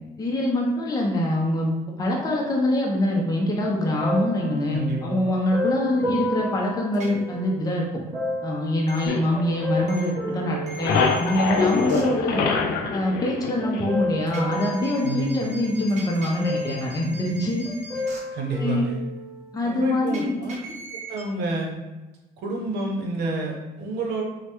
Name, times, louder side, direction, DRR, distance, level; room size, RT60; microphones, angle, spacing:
voice 1, 0.2-1.7 2.0-7.9 8.4-12.4 12.9-17.7 18.6-18.9 19.5-20.4, left 1 dB, 20° left, -2 dB, 0.6 m, -24 dB
sound 1, 4.0-7.6 8.1-11.6 12.3-13.0 13.6-15.9 16.4-17.4 17.6-19.7 20.4-20.5, left 1 dB, 15° right, 0.9 m, -32 dB
voice 2, 4.7-5.2 15.0-15.5 18.3-19.0 19.6-20.6 21.1-21.7 22.4-24.2, right 2 dB, 90° right, 0 dB, 0.8 m, -28 dB
sound 2, 6.9-7.1 8.9-9.0 9.9-10.0 10.7-12.0 14.3-18.2 20.1-21.2, right 2 dB, 45° right, 0.8 m, -40 dB
sound 3, 9.1-10.2 10.5-14.2, left 5 dB, 80° left, 0.4 m, -25 dB
3.2 x 2.1 x 2.9 m, 1.1 s
cardioid pair, 110°, 17 cm